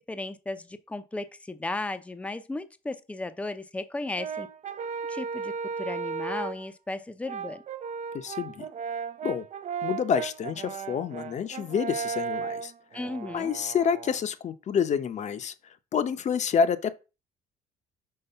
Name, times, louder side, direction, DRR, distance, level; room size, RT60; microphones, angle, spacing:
voice 1, 0.1-4.5 5.1-7.6 12.9-13.6, left 2 dB, 5° left, 0.6 m, -35 dB
Brass instrument, 4.2-6.7 7.3-14.2, right 6 dB, 45° right, 0.6 m, -35 dB
voice 2, 8.1-8.7 9.2-9.4 9.8-12.7 13.3-15.5 15.9-17.0, left 7 dB, 45° left, 0.7 m, -28 dB
5.7 x 3.3 x 5.5 m
cardioid pair, 110°, 17 cm